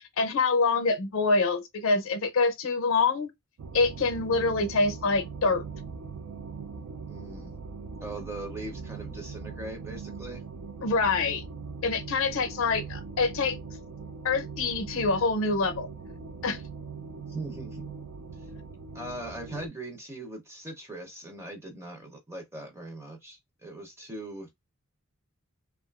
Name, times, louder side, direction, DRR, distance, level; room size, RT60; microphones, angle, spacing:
voice 1, 0.0-3.3 3.7-5.6 10.8-11.4 11.8-13.6 14.2-15.9 16.4-16.6, left 3 dB, 65° left, 0.5 m, -25 dB
sound 1, 3.6-19.7, right 5 dB, 90° right, 0.4 m, -41 dB
voice 2, 7.1-7.5 8.0-10.4 17.3-17.9 18.9-24.5, right 2 dB, 10° right, 0.5 m, -40 dB
2.6 x 2.3 x 2.2 m
head